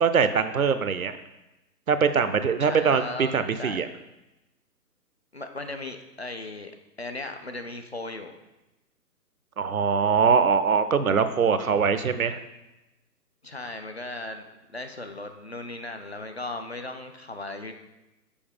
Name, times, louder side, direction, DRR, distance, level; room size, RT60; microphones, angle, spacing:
voice 1, 0.0-1.2 1.9-3.9 9.6-12.4, right 6 dB, 60° right, 11 dB, 0.5 m, -22 dB
voice 2, 2.6-3.9 5.3-6.7 7.0-8.4 11.6-11.7 13.4-17.7, left 2 dB, 45° left, 7 dB, 0.5 m, -37 dB
6.9 x 4.7 x 3.6 m, 0.99 s
figure-of-eight pair, 140°, 49 cm